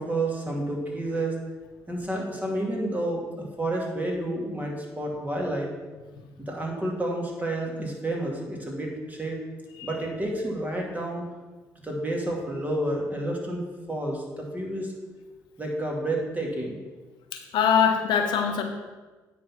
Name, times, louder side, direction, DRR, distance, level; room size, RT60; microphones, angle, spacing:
voice 1, 0.0-1.4 1.9-5.7 6.4-9.4 9.8-11.2 11.8-13.6 13.9-14.9 15.6-16.8, right 1 dB, 20° right, -1 dB, 2.5 m, -30 dB
voice 2, 17.3-18.6, left 7 dB, 75° left, 4 dB, 1.0 m, -23 dB
9.4 x 4.1 x 5.9 m, 1.3 s
supercardioid pair, 60°, 8 cm